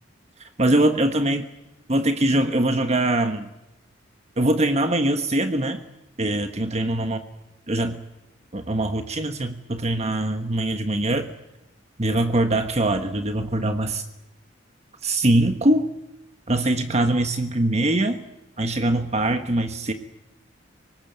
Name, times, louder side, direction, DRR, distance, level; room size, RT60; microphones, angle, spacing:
voice 1, 0.6-1.5 1.9-3.5 4.4-5.8 6.2-7.2 7.7-8.0 8.5-11.3 12.0-14.0 15.0-15.9 16.5-18.2 18.6-19.9, right 1 dB, 35° right, 7 dB, 1.4 m, -22 dB
25.0 x 19.5 x 9.3 m, 0.92 s
head